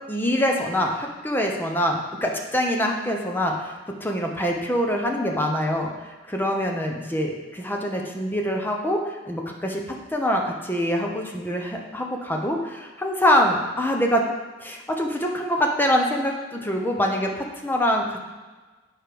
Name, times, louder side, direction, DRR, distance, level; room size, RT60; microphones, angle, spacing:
voice 1, 0.1-3.7 4.0-14.2 14.6-18.2, equal, 10° left, 1 dB, 0.8 m, -24 dB
8.8 x 4.6 x 5.1 m, 1.3 s
head